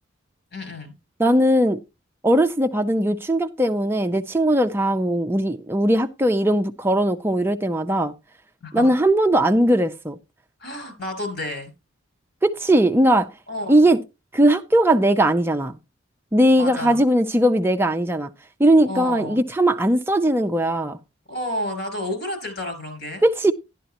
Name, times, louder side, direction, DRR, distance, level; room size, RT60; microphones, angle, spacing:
voice 1, 0.5-1.0 8.6-8.9 10.6-11.7 13.5-13.8 16.6-17.0 18.8-19.4 21.3-23.2, left 1 dB, 60° left, 6.0 m, -30 dB
voice 2, 1.2-1.8 2.2-8.1 8.7-10.2 12.4-13.3 13.7-14.0 14.3-15.8 16.3-18.3 18.6-21.0 23.2-23.5, right 1 dB, 10° right, 0.5 m, -19 dB
12.0 x 11.0 x 2.9 m
head